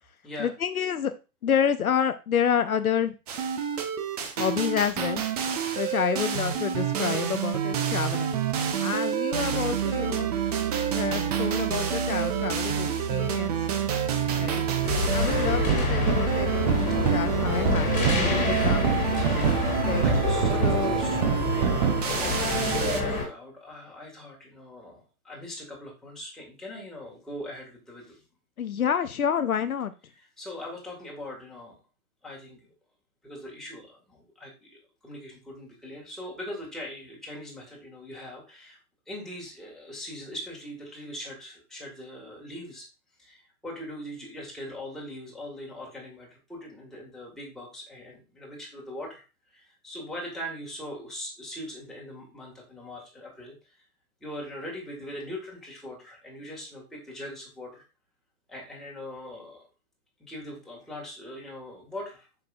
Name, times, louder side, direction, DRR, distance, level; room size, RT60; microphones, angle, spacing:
voice 1, 0.4-1.1 1.4-3.2 4.4-5.2 5.8-8.3 8.8-10.3 10.9-13.7 14.4-14.7 15.1-19.0 19.8-20.1 20.6-21.0 28.6-29.9, left 8 dB, 70° left, 11 dB, 0.7 m, -28 dB
sound 1, 3.3-23.0, right 8 dB, 25° right, 0.7 m, -27 dB
sound 2, 14.8-23.2, left 3 dB, 15° left, 2.1 m, -27 dB
voice 2, 19.3-21.2 21.5-28.2 30.2-31.8 32.2-32.7 33.2-38.8 39.1-42.9 43.2-49.2 49.5-53.7 54.2-57.8 58.5-59.7 60.3-62.3, left 1 dB, ahead, -4 dB, 1.9 m, -41 dB
7.7 x 5.9 x 2.5 m, 0.30 s
figure-of-eight pair, 125°, 44 cm